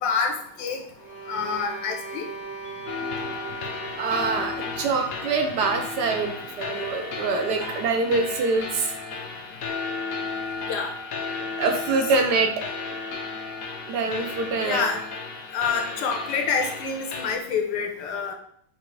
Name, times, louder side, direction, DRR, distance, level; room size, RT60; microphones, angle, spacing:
voice 1, 0.0-0.8 1.3-2.3 10.7-10.9 14.6-15.0 15.5-18.3, left 5 dB, 80° left, 4 dB, 1.4 m, -27 dB
sound 1, 1.0-5.1, right 3 dB, 90° right, 1.9 m, -38 dB
sound 2, 2.9-17.3, left 4 dB, 65° left, 0.9 m, -34 dB
voice 2, 4.0-8.9 11.6-12.5 13.9-14.8, right 4 dB, 75° right, 5 dB, 1.1 m, -25 dB
5.9 x 2.4 x 3.1 m, 0.65 s
omnidirectional pair, 2.0 m